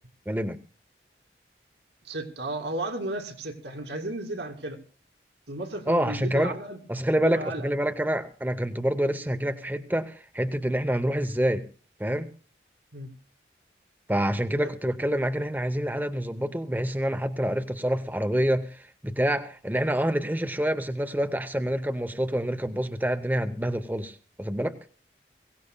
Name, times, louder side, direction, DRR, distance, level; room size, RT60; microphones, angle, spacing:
voice 1, 0.3-0.6 5.9-6.6 6.9-11.7 12.0-12.3 14.1-24.8, equal, 10° right, 0.6 m, -27 dB
voice 2, 2.0-4.8 5.5-6.8 7.2-7.7 12.9-13.1 14.6-14.7, right 1 dB, 90° right, 2.4 m, -33 dB
22.5 x 17.0 x 2.2 m
head